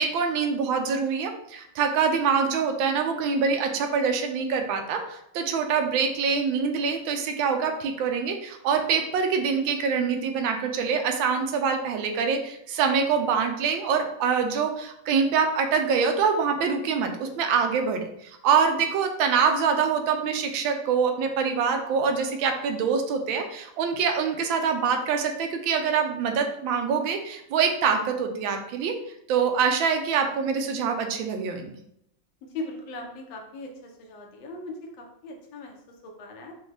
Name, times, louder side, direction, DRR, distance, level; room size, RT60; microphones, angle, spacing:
voice 1, 0.0-28.9 29.3-31.7, right 6 dB, 80° right, 5 dB, 1.3 m, -25 dB
voice 2, 32.5-36.5, left 2 dB, 80° left, 2 dB, 1.5 m, -39 dB
5.2 x 2.3 x 3.3 m, 0.75 s
omnidirectional pair, 2.1 m